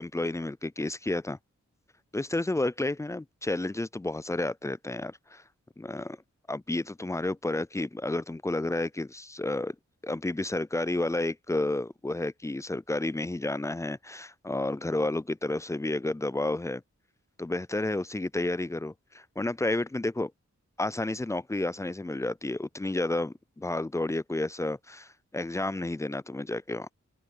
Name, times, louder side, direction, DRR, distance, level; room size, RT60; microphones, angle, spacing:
voice 1, 0.0-1.4 2.1-5.4 5.8-6.2 6.5-9.8 10.0-16.8 17.4-20.3 20.8-26.9, left 2 dB, 10° left, 0.4 m, -31 dB
open air
cardioid pair, 50°, 30 cm